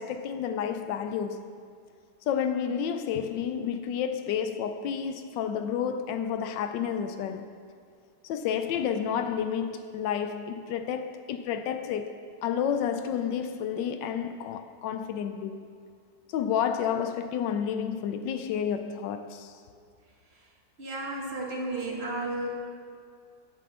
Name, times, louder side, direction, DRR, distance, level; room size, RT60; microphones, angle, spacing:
voice 1, 0.0-1.5 2.3-7.5 8.2-15.7 16.3-19.6, left 8 dB, 80° left, 1.2 m, -30 dB
voice 2, 20.8-22.5, right 2 dB, 35° right, 1.6 m, -33 dB
8.6 x 7.5 x 6.6 m
omnidirectional pair, 2.0 m